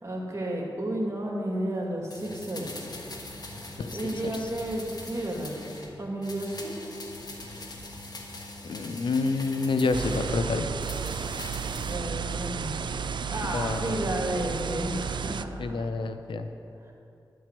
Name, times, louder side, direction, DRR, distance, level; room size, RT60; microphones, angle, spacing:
voice 1, 0.0-2.9 3.9-5.7 6.0-6.7 11.8-12.8 13.2-15.9, right 1 dB, 35° right, -1 dB, 2.2 m, -32 dB
sound 1, 1.5-6.0 6.2-13.4 14.0-14.9, equal, 20° left, 2.5 m, -50 dB
sound 2, 2.1-5.9 6.2-10.4 10.8-12.0 12.3-12.4, left 2 dB, 55° left, 1.3 m, -42 dB
voice 2, 8.6-10.7 13.5-14.1 15.6-16.5, left 3 dB, 85° left, 8 dB, 0.6 m, -28 dB
sound 3, 9.9-15.4, right 6 dB, 70° right, 0.3 m, -33 dB
11.0 x 4.6 x 7.4 m, 2.7 s
cardioid pair, 45°, 8 cm